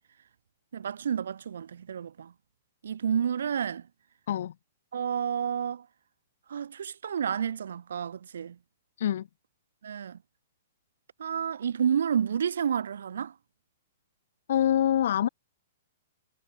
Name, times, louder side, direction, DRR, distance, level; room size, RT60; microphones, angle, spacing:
voice 1, 0.7-2.3 2.8-3.8 4.9-5.8 6.5-8.6 9.8-10.2 11.2-13.3, right 8 dB, 75° right, 6.0 m, -30 dB
voice 2, 14.5-15.3, left 10 dB, 50° left, 6.9 m, -25 dB
hypercardioid pair, 175°, 0 cm